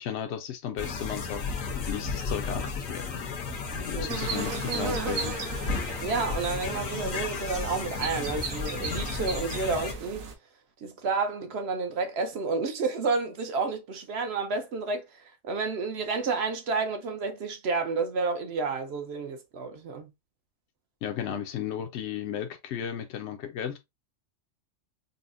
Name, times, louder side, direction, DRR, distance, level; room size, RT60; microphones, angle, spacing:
voice 1, 0.0-3.4 3.7-5.4 21.0-23.8, left 9 dB, 65° left, 0.8 m, -35 dB
sound 1, 0.8-9.9, left 5 dB, 85° left, 1.4 m, -34 dB
sound 2, 4.1-10.3, right 5 dB, 90° right, 1.2 m, -36 dB
voice 2, 6.0-10.3 10.8-15.0 15.4-20.1, right 4 dB, 60° right, 0.8 m, -30 dB
5.4 x 2.1 x 2.5 m
omnidirectional pair, 1.4 m